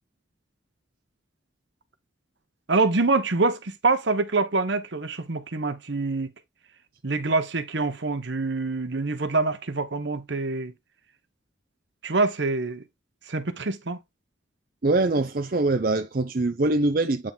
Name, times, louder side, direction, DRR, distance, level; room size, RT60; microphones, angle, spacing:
voice 1, 2.7-6.3 7.0-10.7 12.0-12.8 13.3-14.0, right 3 dB, 65° right, 1.0 m, -25 dB
voice 2, 14.8-17.3, right 2 dB, 45° right, 0.6 m, -23 dB
8.7 x 3.7 x 3.9 m
head